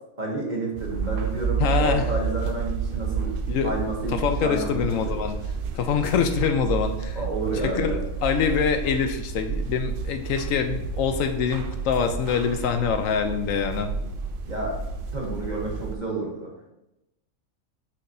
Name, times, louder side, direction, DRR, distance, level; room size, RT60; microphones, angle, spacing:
voice 1, 0.2-3.3 3.6-5.2 7.1-8.0 14.5-14.8 15.1-16.7, right 2 dB, 35° right, -2 dB, 1.4 m, -30 dB
sound 1, 0.8-16.0, right 5 dB, 60° right, 0.6 m, -30 dB
voice 2, 1.6-2.0 3.5-3.7 4.1-5.4 5.7-7.2 7.6-13.9, left 6 dB, 75° left, 7 dB, 1.0 m, -25 dB
6.4 x 5.7 x 2.6 m, 0.89 s
omnidirectional pair, 1.4 m